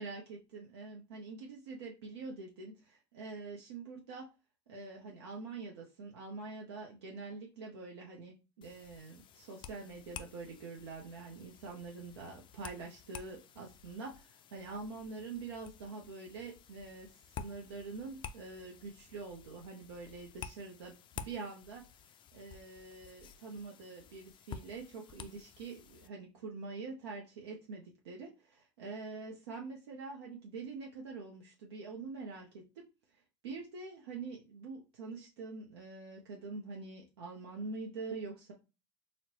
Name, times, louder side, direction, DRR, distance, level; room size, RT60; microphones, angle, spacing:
voice 1, 0.0-4.3 4.7-21.8 22.3-32.8 33.4-38.5, right 4 dB, 85° right, -1 dB, 0.6 m, -45 dB
sound 1, 8.6-26.1, left 7 dB, 40° left, 0.4 m, -51 dB
4.2 x 2.1 x 2.7 m, 0.29 s
hypercardioid pair, 80°, 13 cm